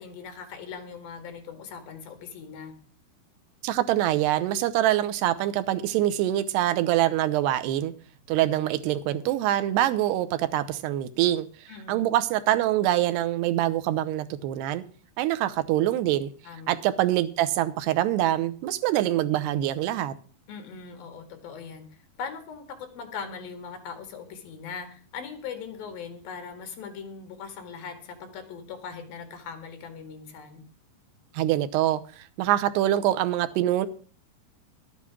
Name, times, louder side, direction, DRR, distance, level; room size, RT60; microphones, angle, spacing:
voice 1, 0.0-2.7 11.7-12.1 16.4-16.7 20.5-21.9 22.2-30.7, left 6 dB, 65° left, 6 dB, 3.7 m, -40 dB
voice 2, 3.6-7.9 8.3-11.5 11.9-14.8 15.2-16.3 16.7-20.1 31.3-33.9, right 13 dB, 90° right, 11 dB, 3.0 m, -25 dB
12.5 x 8.7 x 6.0 m, 0.42 s
omnidirectional pair, 4.6 m